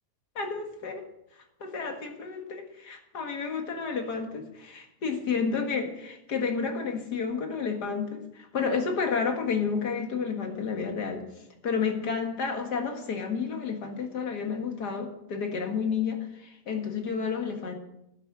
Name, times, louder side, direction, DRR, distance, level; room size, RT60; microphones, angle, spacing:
voice 1, 0.4-1.0 1.6-11.2 11.6-17.7, left 5 dB, 85° left, 4 dB, 2.3 m, -31 dB
11.5 x 10.0 x 6.0 m, 0.82 s
omnidirectional pair, 1.7 m